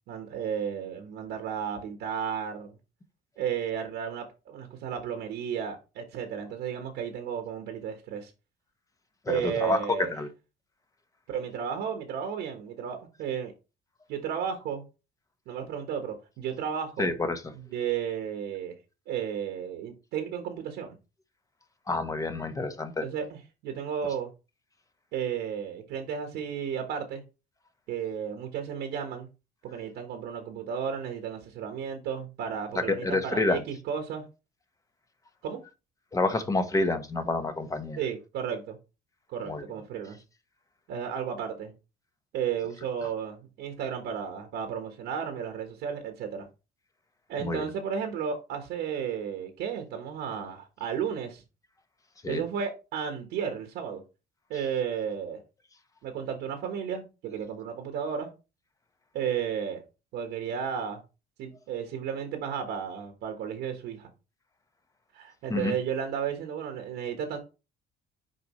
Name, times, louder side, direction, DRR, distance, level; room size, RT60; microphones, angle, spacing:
voice 1, 0.1-2.7 3.4-8.3 9.3-10.1 11.3-13.5 14.1-14.8 15.5-17.1 17.5-18.7 19.1-21.0 23.0-24.3 25.1-27.2 27.9-29.3 29.6-34.2 35.4-35.6 38.0-38.8 39.3-40.2 40.9-41.7 42.3-46.5 47.3-51.4 52.3-54.0 54.5-55.4 56.0-58.3 59.1-59.8 60.1-61.0 61.4-64.1 65.1-67.4, right 7 dB, 85° right, 1.4 m, -33 dB
voice 2, 9.3-9.8 10.1-10.3 17.0-17.4 21.9-23.1 32.7-33.6 36.1-38.0 39.5-39.6 47.4-47.7 52.2-52.4 65.5-65.7, left 2 dB, 20° left, 1.1 m, -28 dB
6.8 x 5.0 x 3.1 m
cardioid pair, 110°, 17 cm